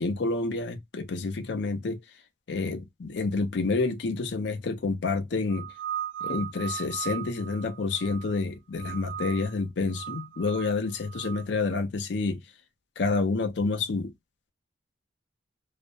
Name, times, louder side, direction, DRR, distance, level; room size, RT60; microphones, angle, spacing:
voice 1, 0.0-2.0 2.5-5.7 6.2-12.4 13.0-14.1, left 3 dB, 70° left, 0.5 m, -29 dB
sound 1, 5.5-8.4 8.8-9.5 9.9-11.4, right 10 dB, 75° right, 0.3 m, -37 dB
2.4 x 2.1 x 2.5 m
head